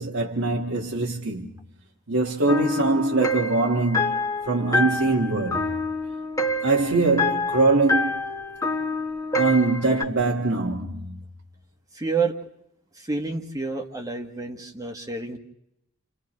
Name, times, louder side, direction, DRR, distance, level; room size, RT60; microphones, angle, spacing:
voice 1, 0.0-1.5 2.1-4.2 4.5-5.7 6.6-8.1 9.4-11.2, right 3 dB, 85° right, 1.9 m, -23 dB
sound 1, 2.5-10.0, left 2 dB, 15° left, 1.5 m, -27 dB
voice 2, 11.9-12.3 12.9-15.4, right 4 dB, 15° right, 1.5 m, -29 dB
30.0 x 29.5 x 3.2 m
head